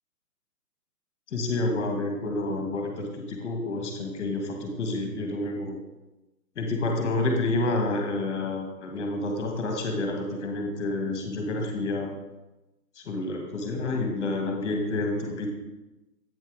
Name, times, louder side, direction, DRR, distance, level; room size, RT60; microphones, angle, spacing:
voice 1, 1.3-5.8 6.5-12.1 13.0-15.5, left 2 dB, 10° left, 2 dB, 1.2 m, -29 dB
8.0 x 5.6 x 4.7 m, 1.0 s
hypercardioid pair, 165°, 48 cm